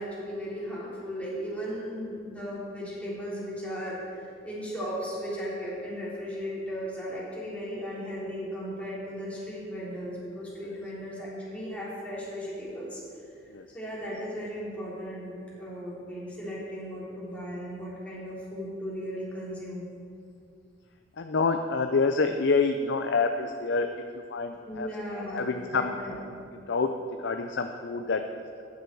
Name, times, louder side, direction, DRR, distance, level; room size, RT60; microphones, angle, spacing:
voice 1, 0.0-13.0 13.4-19.9 24.6-26.1, equal, 5° left, -8 dB, 3.6 m, -36 dB
voice 2, 21.2-23.9 24.3-24.9 25.3-25.9 26.7-26.9 27.2-28.2, left 4 dB, 65° left, 6 dB, 0.5 m, -27 dB
14.0 x 9.7 x 4.7 m, 2.5 s
head